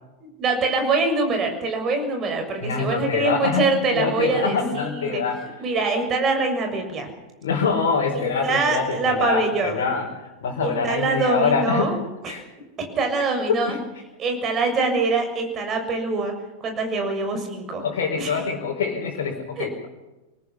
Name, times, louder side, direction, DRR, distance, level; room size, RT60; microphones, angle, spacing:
voice 1, 0.2-5.2 5.6-7.1 8.2-9.8 10.6-12.0 12.2-12.3 12.9-13.7 14.2-16.3 16.6-17.8 18.2-18.4 19.6-19.7, right 3 dB, 30° right, 5 dB, 6.7 m, -24 dB
voice 2, 2.6-5.4 7.4-11.9 12.3-12.4 13.5-13.8 17.8-19.9, left 5 dB, 60° left, -2 dB, 4.8 m, -25 dB
27.0 x 19.5 x 5.8 m, 1.1 s
figure-of-eight pair, 90°, 0 cm